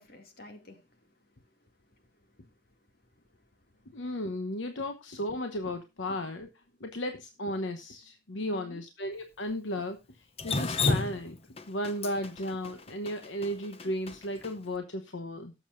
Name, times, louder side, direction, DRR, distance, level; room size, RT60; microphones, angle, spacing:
voice 1, 0.0-4.0 8.4-8.8, left 1 dB, 50° left, 2.4 m, -55 dB
voice 2, 3.9-6.5 6.8-11.4 11.7-15.5, left 1 dB, 75° left, 1.0 m, -35 dB
Drip, 10.4-14.5, left 3 dB, 30° left, 0.7 m, -31 dB
18.0 x 7.2 x 2.6 m
head